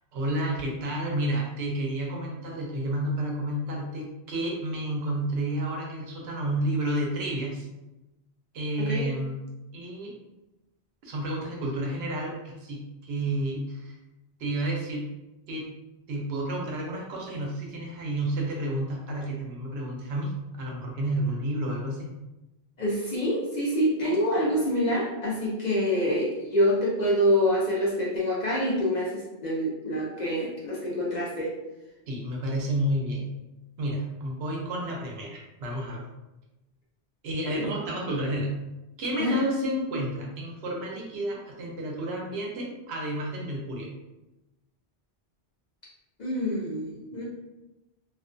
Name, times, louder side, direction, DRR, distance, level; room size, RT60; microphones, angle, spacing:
voice 1, 0.1-7.7 8.5-9.4 9.7-10.1 11.0-13.9 14.4-15.1 15.5-15.7 16.1-22.1 32.1-33.3 33.8-36.1 37.2-38.5 39.0-43.9, right 1 dB, 75° right, -1 dB, 0.8 m, -30 dB
voice 2, 22.8-31.5 37.4-37.7 39.2-39.4 46.2-47.2, equal, 50° left, -6 dB, 0.6 m, -26 dB
2.4 x 2.2 x 2.4 m, 1.0 s
omnidirectional pair, 1.1 m